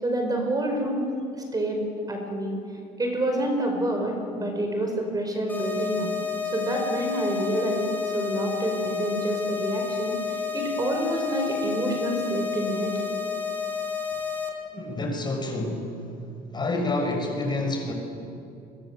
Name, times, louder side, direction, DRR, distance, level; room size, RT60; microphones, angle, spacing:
voice 1, 0.0-1.1 1.5-1.8 2.1-2.6 3.0-6.1 6.5-7.9 8.1-12.9, right 1 dB, 20° right, 3 dB, 5.4 m, -27 dB
sound 1, 5.5-14.5, left 6 dB, 10° left, 5.4 m, -30 dB
voice 2, 14.7-15.9 16.5-17.9, left 2 dB, 25° left, 2 dB, 6.4 m, -28 dB
29.0 x 23.5 x 7.8 m, 2.5 s
cardioid pair, 110°, 17 cm